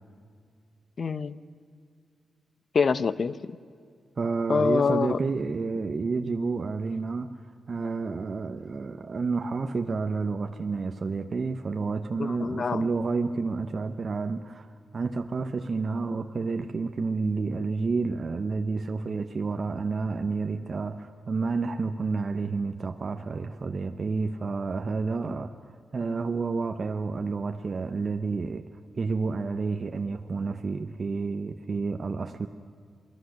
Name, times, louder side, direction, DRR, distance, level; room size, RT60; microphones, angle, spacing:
voice 1, 1.0-1.4 2.7-3.6 4.5-5.2 12.2-12.9, left 5 dB, 55° left, 16 dB, 0.8 m, -25 dB
voice 2, 4.2-7.4 7.7-25.5 25.9-28.7 29.0-32.5, right 4 dB, 50° right, 6 dB, 1.0 m, -30 dB
28.5 x 19.0 x 6.6 m, 2.2 s
supercardioid pair, 40°, 0 cm